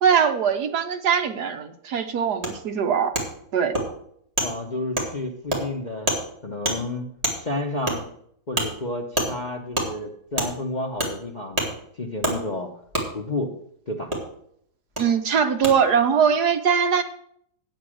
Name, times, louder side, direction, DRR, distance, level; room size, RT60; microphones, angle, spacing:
voice 1, 0.0-3.1 3.5-3.8 15.0-17.0, right 7 dB, 65° right, 7 dB, 1.3 m, -21 dB
Wood, 2.4-2.5 3.1-3.3 3.7-3.9 4.4-4.5 5.0-5.1 5.5-5.6 6.1-6.2 6.6-6.8 7.2-7.4 7.9-8.0 8.6-8.7 9.2-9.3 9.7-9.9 10.4-10.5 11.0-11.1 11.6-11.7 12.2-12.4 12.9-13.1 14.1-14.2 15.0-15.1 15.6-15.7, right 1 dB, 20° right, 2.4 m, -24 dB
voice 2, 4.4-6.1 6.4-7.1 7.3-8.1 8.5-12.7 13.1-13.5 13.9-14.1, left 2 dB, 35° left, 1 dB, 0.7 m, -31 dB
8.9 x 8.1 x 6.4 m, 0.67 s
omnidirectional pair, 2.1 m